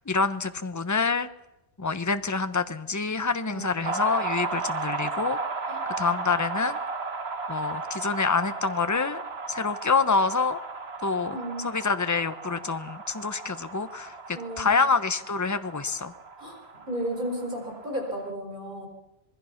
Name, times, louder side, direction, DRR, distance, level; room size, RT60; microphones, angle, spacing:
voice 1, 0.1-1.3 1.8-5.4 6.0-6.8 7.5-9.2 9.5-10.6 11.0-14.1 14.6-16.1, left 4 dB, 15° left, 11 dB, 0.9 m, -26 dB
voice 2, 3.5-3.9 5.7-5.8 11.3-11.6 14.3-14.8 16.4-16.6 16.9-18.9, right 1 dB, 45° right, 2 dB, 4.5 m, -34 dB
sound 1, 3.8-18.3, right 4 dB, 60° right, 1.9 m, -35 dB
26.5 x 20.5 x 5.8 m, 0.89 s
omnidirectional pair, 1.2 m